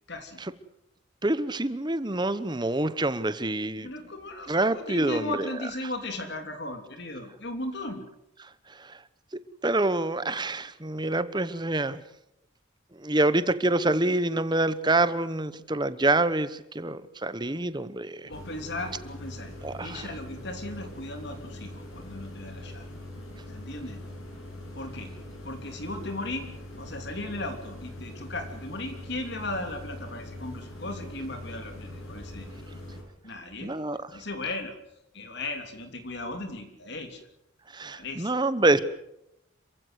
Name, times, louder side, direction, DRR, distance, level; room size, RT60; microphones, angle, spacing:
voice 1, 0.1-0.4 3.8-8.0 18.2-19.5 19.8-22.9 23.5-24.0 24.7-25.1 25.4-26.5 26.8-32.6 33.2-34.7 35.1-37.2 37.9-38.3 38.7-38.8, left 2 dB, 55° left, 3.2 m, -36 dB
voice 2, 1.2-3.9 4.5-5.5 8.7-9.0 9.6-12.0 13.0-18.3 19.6-20.0 33.6-34.0 37.7-38.8, right 2 dB, 20° right, 1.0 m, -26 dB
sound 1, 18.3-33.0, left 1 dB, 85° left, 7.9 m, -42 dB
27.0 x 16.0 x 8.1 m
head